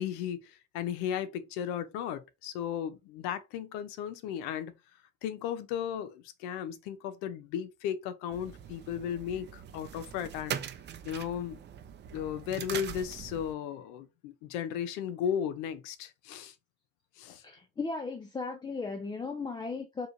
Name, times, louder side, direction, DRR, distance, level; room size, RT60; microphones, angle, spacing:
voice 1, 0.0-4.7 5.2-10.6 11.0-11.6 12.1-16.5 17.2-17.4, left 9 dB, 75° left, 0.8 m, -35 dB
sound 1, 8.3-13.5, right 9 dB, 35° right, 0.6 m, -42 dB
voice 2, 17.4-20.1, left 4 dB, 15° left, 0.5 m, -36 dB
4.6 x 3.2 x 2.6 m
supercardioid pair, 110°, 31 cm